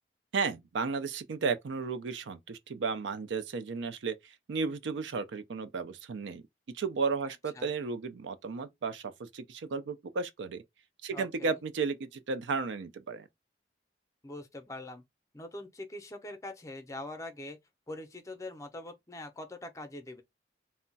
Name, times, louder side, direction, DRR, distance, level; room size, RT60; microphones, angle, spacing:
voice 1, 0.3-6.4 6.7-10.6 11.0-13.3, right 4 dB, 90° right, 0.4 m, -34 dB
voice 2, 11.1-11.5 14.2-15.0 15.3-17.6 17.9-20.2, left 1 dB, 20° left, 0.5 m, -43 dB
2.2 x 2.1 x 3.9 m
head